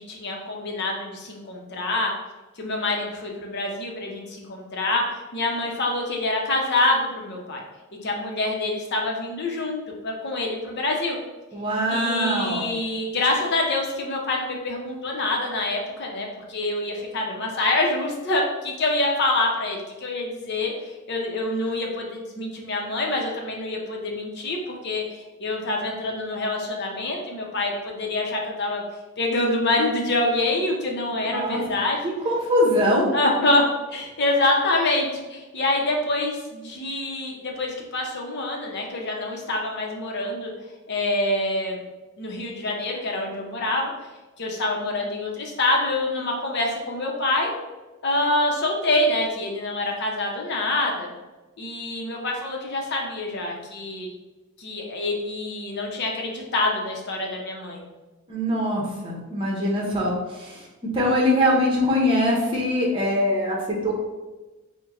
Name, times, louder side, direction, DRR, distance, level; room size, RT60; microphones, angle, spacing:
voice 1, 0.0-2.1 2.6-7.6 8.0-11.2 11.9-25.0 25.4-28.8 29.2-32.0 33.1-33.6 33.9-40.5 40.9-41.8 42.2-43.9 44.4-47.5 48.0-51.1 51.6-54.1 54.6-57.8, left 2 dB, 50° left, 0 dB, 0.7 m, -26 dB
voice 2, 11.5-12.7 31.2-31.6 32.2-33.1 58.3-60.6 60.9-63.9, left 1 dB, 25° right, -4 dB, 0.9 m, -22 dB
4.4 x 2.2 x 3.6 m, 1.2 s
head